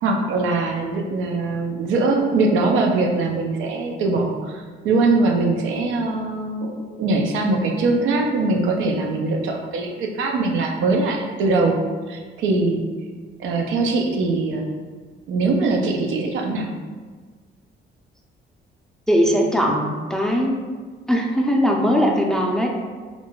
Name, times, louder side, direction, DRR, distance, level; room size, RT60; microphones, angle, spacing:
voice 1, 0.0-11.8 12.1-12.8 13.4-14.7 15.3-16.7, right 3 dB, 90° right, 1 dB, 0.4 m, -22 dB
voice 2, 19.1-19.8 20.1-20.6 21.1-22.7, equal, 5° left, 0 dB, 0.4 m, -19 dB
2.3 x 2.2 x 3.7 m, 1.5 s
cardioid pair, 90°, 20 cm